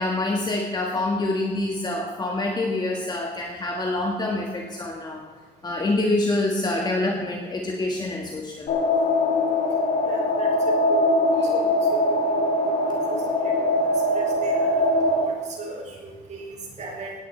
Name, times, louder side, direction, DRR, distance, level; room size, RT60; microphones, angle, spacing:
voice 1, 0.0-5.2 5.6-8.8, left 2 dB, 25° left, 0 dB, 1.6 m, -26 dB
sound 1, 8.7-15.2, left 1 dB, 65° left, 4.2 m, -22 dB
voice 2, 10.1-10.5 10.9-11.2 11.5-11.8 12.3-12.5 12.8-13.0 13.4-13.8 14.1-17.1, right 2 dB, 45° right, 0 dB, 4.3 m, -37 dB
17.0 x 9.5 x 4.4 m, 1.5 s
cardioid pair, 110°, 17 cm